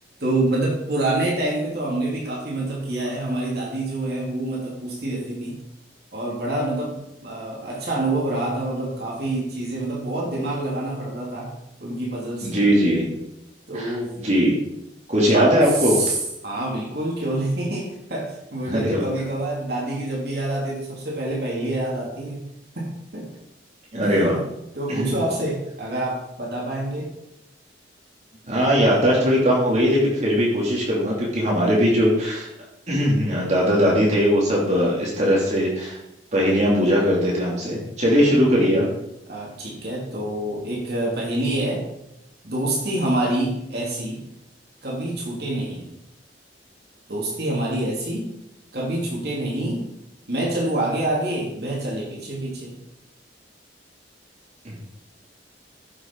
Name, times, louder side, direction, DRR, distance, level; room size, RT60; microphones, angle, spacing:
voice 1, 0.2-5.6 6.1-11.5 11.8-12.7 13.7-14.1 15.3-16.1 16.4-22.4 22.7-23.3 24.0-24.4 24.7-27.1 39.3-41.8 42.4-44.2 44.8-45.9 47.1-48.3 48.7-49.8 50.3-52.8, right 1 dB, 55° right, -3 dB, 2.9 m, -27 dB
voice 2, 12.4-13.1 13.7-14.5 15.1-16.0 18.7-19.0 23.9-24.4 24.9-25.1 28.5-32.5 32.9-36.0 36.3-38.9 54.6-54.8, equal, 40° right, -4 dB, 2.7 m, -20 dB
14.0 x 6.5 x 4.6 m, 0.84 s
head